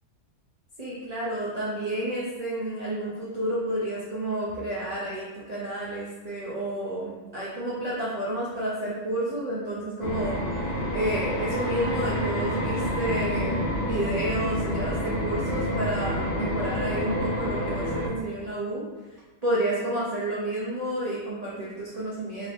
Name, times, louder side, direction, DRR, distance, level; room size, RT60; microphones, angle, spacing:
voice 1, 0.8-10.4 10.9-18.8 19.4-22.5, right 1 dB, 75° right, -8 dB, 0.3 m, -30 dB
sound 1, 10.0-18.1, equal, 45° left, 0.6 m, -28 dB
2.8 x 2.6 x 3.3 m, 1.2 s
omnidirectional pair, 1.6 m